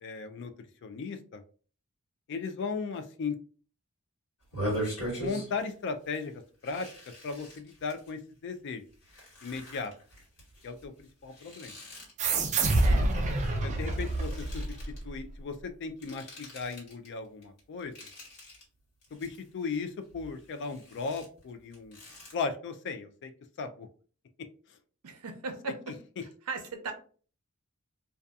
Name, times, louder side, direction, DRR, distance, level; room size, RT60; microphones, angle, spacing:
voice 1, 0.0-0.5 0.8-1.4 2.3-3.4 5.0-6.9 7.2-8.8 9.4-9.9 10.6-11.7 13.6-14.8 15.0-17.9 19.1-22.0 22.3-23.3 23.6-23.9, left 4 dB, 55° left, 9 dB, 0.3 m, -36 dB
sound 1, 4.4-5.7 6.1-6.2 6.6-8.1 8.7-13.5 13.7-15.0 15.8-17.1 17.4-18.6 19.0-19.8 20.1-22.3, right 1 dB, 80° left, 1.4 m, -41 dB
sound 2, 12.2-15.2, right 2 dB, 30° right, 0.4 m, -27 dB
voice 2, 12.7-13.3 25.0-26.0 26.5-26.9, right 4 dB, 75° right, 5 dB, 0.6 m, -38 dB
2.6 x 2.3 x 2.3 m, 0.41 s
head